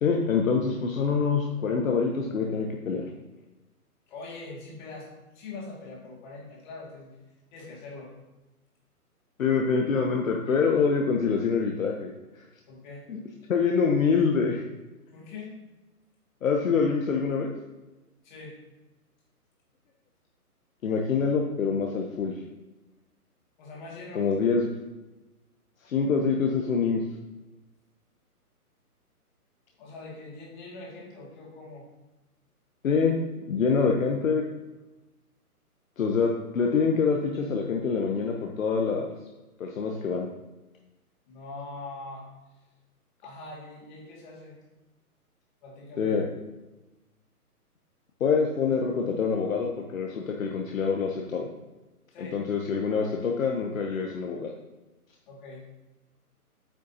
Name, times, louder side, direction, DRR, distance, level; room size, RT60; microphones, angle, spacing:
voice 1, 0.0-3.1 9.4-12.4 13.1-13.2 13.5-14.6 16.4-17.5 20.8-22.4 24.1-24.7 25.8-27.0 32.8-34.4 36.0-39.1 39.6-40.3 46.0-46.2 48.2-51.5 52.2-54.5, left 5 dB, 60° left, 1 dB, 1.0 m, -25 dB
voice 2, 4.1-7.2 7.5-8.1 12.7-13.1 15.1-15.5 18.2-18.6 23.6-24.3 29.8-31.9 41.3-42.3 43.2-44.6 45.6-46.2 52.1-52.4 55.3-55.6, left 3 dB, 30° left, -3 dB, 2.3 m, -42 dB
8.5 x 6.2 x 2.8 m, 1.1 s
hypercardioid pair, 150°, 46 cm